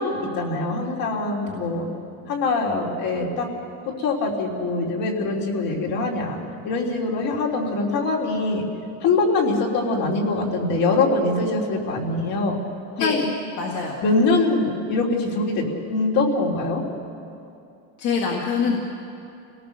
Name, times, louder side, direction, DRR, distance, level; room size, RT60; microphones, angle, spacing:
voice 1, 0.0-1.9 2.3-3.5 3.9-8.6 9.0-12.6 13.0-13.3 14.0-16.8, left 3 dB, 65° left, -1 dB, 3.5 m, -23 dB
voice 2, 13.6-14.0 18.0-18.8, left 5 dB, 50° left, -2 dB, 2.3 m, -24 dB
28.0 x 18.0 x 6.7 m, 2.7 s
cardioid pair, 165°, 38 cm